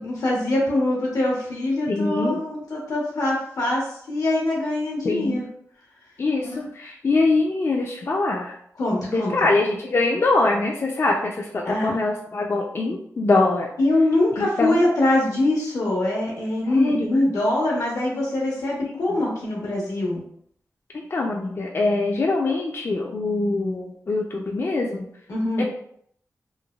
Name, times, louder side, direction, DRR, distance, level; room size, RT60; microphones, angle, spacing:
voice 1, 0.0-5.4 6.4-6.7 8.8-9.3 11.6-11.9 13.8-20.2 25.3-25.6, left 1 dB, 85° left, -3 dB, 1.0 m, -23 dB
voice 2, 1.9-2.4 5.0-5.4 6.2-8.5 9.1-13.7 14.4-14.8 16.7-17.1 18.8-19.2 20.9-25.1 25.6-25.7, left 3 dB, 45° left, 0 dB, 0.3 m, -23 dB
3.1 x 2.1 x 2.3 m, 0.66 s
wide cardioid pair, 85°, 6 cm